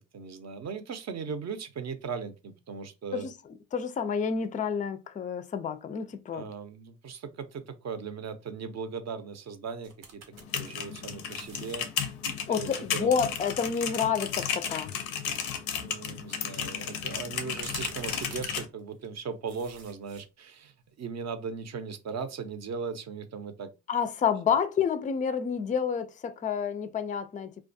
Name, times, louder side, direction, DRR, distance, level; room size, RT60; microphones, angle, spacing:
voice 1, 0.1-3.3 6.3-10.2 10.5-11.9 12.5-13.2 15.8-23.7, right 5 dB, 45° right, 0.6 m, -38 dB
voice 2, 3.7-6.5 12.5-14.9 23.9-27.6, left 7 dB, 25° left, 0.3 m, -29 dB
sound 1, 9.8-10.4 10.8-12.0 14.7-14.8 15.2-15.4 17.6-19.2 19.5-20.3 20.7-20.8, right 5 dB, 80° right, 0.7 m, -46 dB
sound 2, 10.3-18.7, left 8 dB, 85° left, 0.5 m, -34 dB
2.3 x 2.2 x 2.6 m
supercardioid pair, 55°, 36 cm